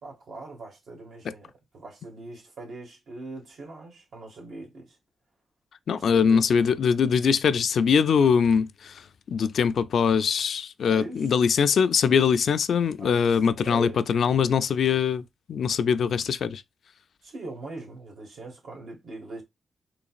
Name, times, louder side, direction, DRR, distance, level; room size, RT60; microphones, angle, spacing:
voice 1, 0.0-5.0 5.9-6.4 10.8-11.3 13.0-13.3 13.6-14.0 17.2-19.4, right 3 dB, 80° right, 1.8 m, -41 dB
voice 2, 5.9-15.2 15.5-16.6, left 6 dB, 70° left, 0.3 m, -22 dB
3.9 x 3.1 x 2.4 m
wide cardioid pair, 125°, 0 cm